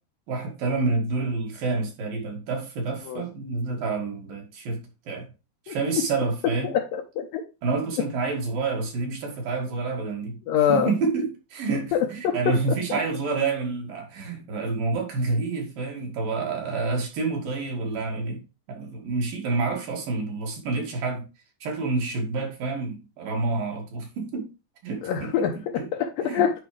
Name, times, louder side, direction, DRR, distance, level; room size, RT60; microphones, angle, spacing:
voice 1, 0.3-4.8 5.1-5.3 5.7-6.7 7.6-10.4 10.7-18.4 18.7-21.3 21.6-24.5 24.8-25.5 25.8-25.9 26.2-26.5, right 3 dB, 60° right, 3.6 m, -28 dB
voice 2, 6.7-7.4 10.5-10.9 11.9-12.4 25.0-26.5, left 8 dB, 70° left, 2.4 m, -24 dB
10.5 x 5.1 x 3.3 m
omnidirectional pair, 4.7 m